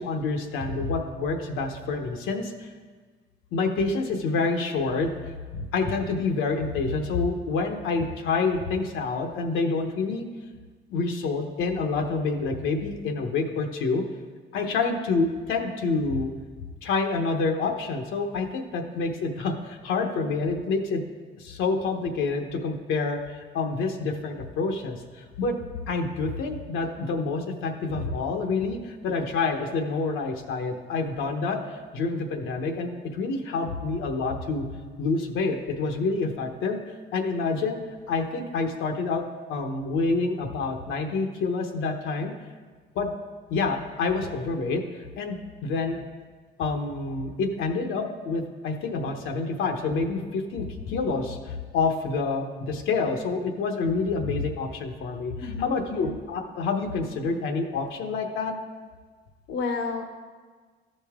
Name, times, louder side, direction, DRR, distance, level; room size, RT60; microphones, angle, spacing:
voice 1, 0.0-2.7 3.5-5.1 5.5-10.2 10.9-14.0 14.5-16.3 16.8-21.0 21.4-25.5 25.9-34.6 35.0-36.8 37.1-37.8 38.1-39.2 39.5-42.3 42.9-43.1 43.5-44.8 45.2-46.0 46.6-58.6, left 4 dB, 90° left, 3 dB, 1.0 m, -27 dB
voice 2, 55.4-56.2 59.5-60.0, left 4 dB, 65° left, 5 dB, 0.8 m, -31 dB
13.0 x 5.3 x 3.6 m, 1.5 s
cardioid pair, 90°, 20 cm